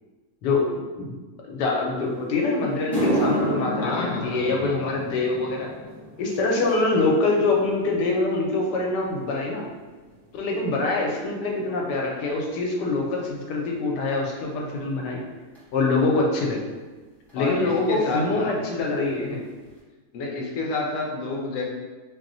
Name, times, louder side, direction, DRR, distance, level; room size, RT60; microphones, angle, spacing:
voice 1, 1.5-5.7 6.2-9.6 10.3-15.2 15.7-16.6 17.3-19.4, left 3 dB, 90° left, 0 dB, 1.2 m, -24 dB
sound 1, 2.2-2.3 2.7-11.2 11.5-11.9 12.7-12.8 15.5-15.6 17.3-17.4 17.6-17.8 18.1-18.6 19.0-19.1 19.7-19.8, equal, ahead, 0.6 m, -32 dB
voice 2, 3.8-4.7 17.4-18.5 20.1-21.6, left 3 dB, 65° left, -2 dB, 0.9 m, -29 dB
2.9 x 2.0 x 3.8 m, 1.3 s
omnidirectional pair, 1.7 m